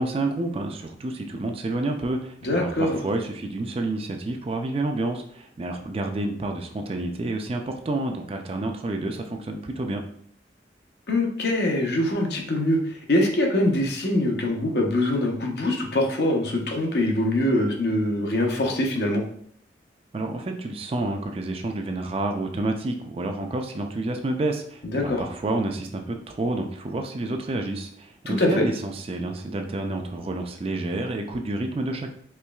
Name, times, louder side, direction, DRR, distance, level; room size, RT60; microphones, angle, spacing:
voice 1, 0.0-10.0 20.1-32.1, right 2 dB, 35° right, 4 dB, 0.4 m, -29 dB
voice 2, 2.4-3.0 11.1-19.2 24.8-25.2 28.3-28.5, left 1 dB, 70° left, 1 dB, 0.8 m, -23 dB
4.4 x 3.0 x 2.3 m, 0.64 s
head